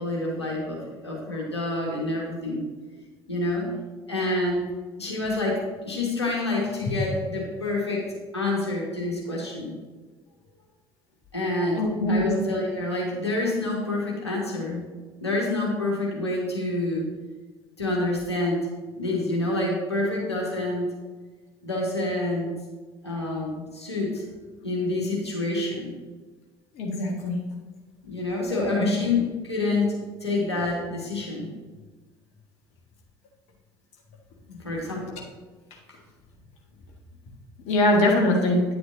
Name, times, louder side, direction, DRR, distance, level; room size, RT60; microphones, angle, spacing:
voice 1, 0.0-2.6 3.3-3.7 4.1-4.6 5.0-8.0 8.3-9.7 11.3-14.8 15.2-17.1 17.8-18.7 19.0-20.9 21.6-22.5 23.0-24.2 24.6-25.9 28.1-31.5 34.5-35.1, left 2 dB, 85° left, -3 dB, 1.7 m, -27 dB
voice 2, 11.8-12.3 26.8-27.4 37.7-38.6, left 1 dB, 50° left, 0 dB, 1.8 m, -22 dB
9.6 x 7.7 x 2.8 m, 1.3 s
figure-of-eight pair, 60°, 14 cm